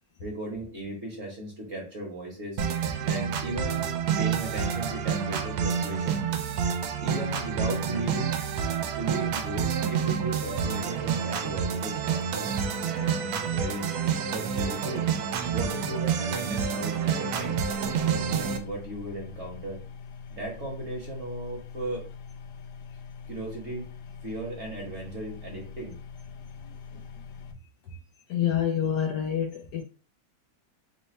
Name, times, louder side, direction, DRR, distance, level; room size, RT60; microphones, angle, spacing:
voice 1, 0.2-2.6 3.0-6.2 7.0-8.3 8.9-12.6 12.9-13.9 14.3-15.0 15.5-17.5 18.0-19.8 20.3-22.1 23.3-23.9 24.2-26.0 26.9-27.0, right 1 dB, 45° right, 1.1 m, -36 dB
sound 1, 2.6-18.6, right 7 dB, 80° right, 1.4 m, -28 dB
sound 2, 17.4-27.5, left 6 dB, 90° left, 1.4 m, -43 dB
voice 2, 28.3-29.8, left 9 dB, 70° left, 1.1 m, -27 dB
4.0 x 2.2 x 4.2 m
omnidirectional pair, 2.2 m